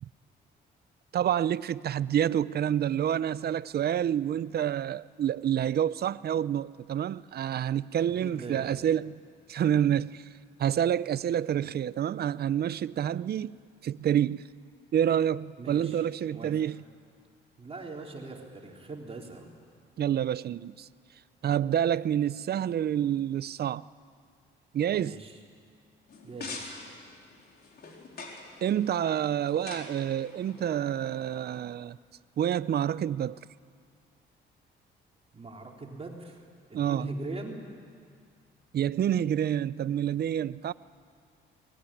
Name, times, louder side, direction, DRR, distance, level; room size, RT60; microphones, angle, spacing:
voice 1, 1.1-9.2 9.5-10.2 10.6-13.6 13.8-14.4 14.9-16.8 20.0-20.9 21.4-23.8 24.7-25.2 28.6-32.0 32.4-33.4 36.7-37.1 38.7-40.7, right 10 dB, 55° right, 0.6 m, -28 dB
voice 2, 8.2-8.8 15.6-16.0 16.3-16.5 17.6-19.5 24.9-25.4 26.2-26.7 35.3-36.4 36.7-37.6, right 3 dB, 30° right, 3.7 m, -40 dB
sound 1, 26.1-31.6, left 3 dB, 55° left, 4.3 m, -45 dB
22.5 x 19.5 x 10.0 m
cardioid pair, 90°, 20 cm